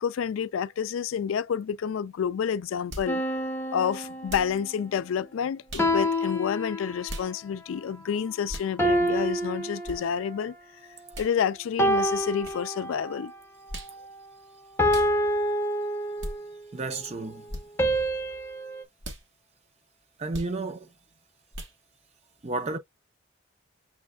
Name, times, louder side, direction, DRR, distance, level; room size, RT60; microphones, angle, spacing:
voice 1, 0.0-3.2 3.7-10.5 11.2-13.3, left 8 dB, 85° left, 0.3 m, -29 dB
sound 1, 2.9-3.1 4.3-4.6 5.7-5.9 7.1-7.3 8.5-8.7 9.9-10.0 11.1-11.3 12.4-12.6 13.7-14.0 14.9-15.1 16.2-16.4 17.5-17.7 19.0-19.2 20.3-20.5 21.5-21.8, equal, 70° right, 1.6 m, -38 dB
sound 2, 3.1-4.7 5.8-7.3 8.8-10.5 11.8-13.3 14.8-16.5 17.8-18.8, equal, 10° left, 0.6 m, -27 dB
voice 2, 16.7-17.4 20.2-20.9 22.4-22.8, right 3 dB, 35° right, 0.6 m, -31 dB
6.2 x 3.3 x 2.2 m
head